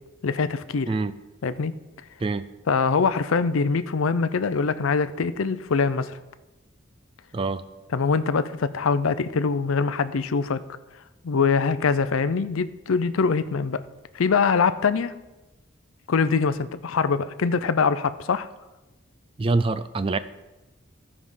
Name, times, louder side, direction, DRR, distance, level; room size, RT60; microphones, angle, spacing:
voice 1, 0.2-0.9 1.4-1.7 2.7-6.1 7.9-10.6 11.2-13.8 14.1-15.1 16.1-18.5, left 5 dB, 85° left, 13 dB, 0.5 m, -23 dB
voice 2, 19.4-20.2, right 3 dB, 25° right, 13 dB, 0.3 m, -25 dB
14.5 x 4.9 x 5.4 m, 1.1 s
head